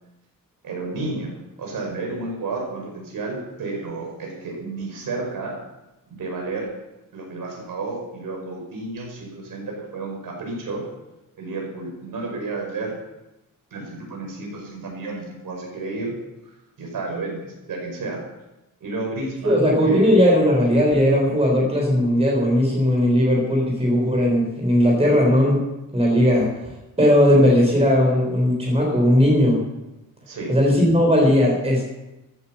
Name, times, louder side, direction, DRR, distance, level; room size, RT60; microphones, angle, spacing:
voice 1, 0.6-5.5 6.1-6.7 7.1-10.8 11.3-13.0 13.7-16.1 16.4-16.5 16.8-18.2 18.8-20.2 30.3-30.5, right 3 dB, 70° right, 0 dB, 5.2 m, -31 dB
voice 2, 19.4-25.6 25.9-26.6 27.0-29.6 30.5-31.8, equal, 15° right, -1 dB, 4.0 m, -17 dB
15.0 x 9.3 x 7.1 m, 0.97 s
wide cardioid pair, 180°, 35 cm